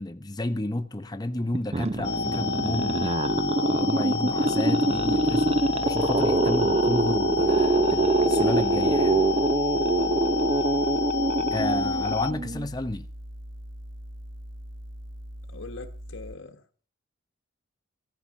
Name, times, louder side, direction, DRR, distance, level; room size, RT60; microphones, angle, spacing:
voice 1, 0.0-9.3 11.5-13.1, left 1 dB, 20° left, 0.7 m, -32 dB
sound 1, 1.5-12.7, right 2 dB, 30° right, 0.6 m, -24 dB
sound 2, 2.0-12.3, left 5 dB, 55° left, 1.0 m, -30 dB
sound 3, 4.9-16.3, equal, 65° right, 1.2 m, -41 dB
voice 2, 15.5-16.6, left 3 dB, 75° left, 1.4 m, -42 dB
14.0 x 9.0 x 6.4 m
head